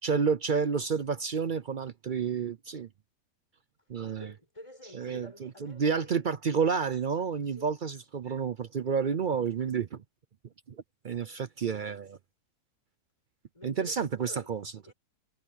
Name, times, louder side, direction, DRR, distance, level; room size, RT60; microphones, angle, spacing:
voice 1, 0.0-2.9 3.9-4.3 4.9-10.0 10.7-10.8 11.0-12.2 13.6-14.9, right 6 dB, 60° right, 0.5 m, -30 dB
voice 2, 4.2-6.2 7.2-7.7 13.5-14.5 14.8-14.9, left 1 dB, 20° left, 6.7 m, -49 dB
omnidirectional pair, 1.6 m